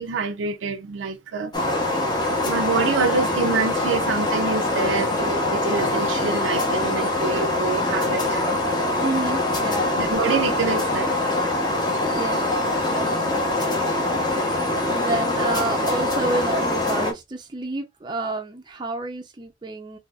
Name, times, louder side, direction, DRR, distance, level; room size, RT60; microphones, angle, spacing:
voice 1, 0.0-1.5 2.4-8.4 10.0-11.1, right 5 dB, 90° right, 0.5 m, -26 dB
sound 1, 1.5-17.1, left 2 dB, 25° left, 0.8 m, -23 dB
voice 2, 9.0-9.9 12.1-20.0, right 2 dB, 25° right, 0.4 m, -30 dB
3.9 x 2.7 x 2.3 m
head